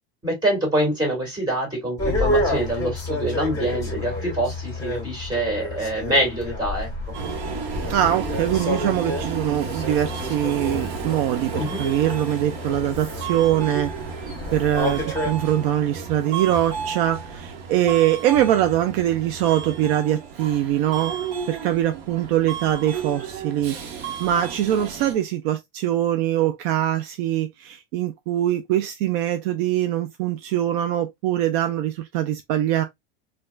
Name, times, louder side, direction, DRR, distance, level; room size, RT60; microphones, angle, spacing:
voice 1, 0.2-7.2 11.6-11.8, right 1 dB, 15° right, 2.1 m, -25 dB
sound 1, 2.0-15.3, left 1 dB, 10° left, 1.8 m, -29 dB
Subway metro underground, 7.1-25.1, right 6 dB, 75° right, 1.1 m, -33 dB
voice 2, 7.9-13.9 14.5-32.8, right 12 dB, 60° right, 0.5 m, -23 dB
4.4 x 2.3 x 2.2 m
supercardioid pair, 140°, 30 cm